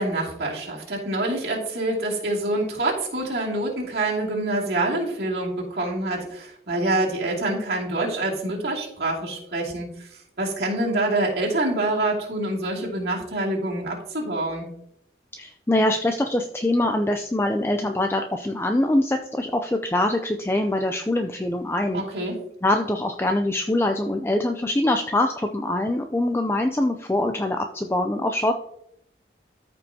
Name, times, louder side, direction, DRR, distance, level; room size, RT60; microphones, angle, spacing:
voice 1, 0.0-10.1 10.4-14.7 21.9-22.4, right 2 dB, 60° right, -3 dB, 2.6 m, -26 dB
voice 2, 15.4-22.0 22.6-28.5, left 1 dB, 15° left, 5 dB, 0.4 m, -23 dB
13.5 x 5.3 x 2.8 m, 0.75 s
head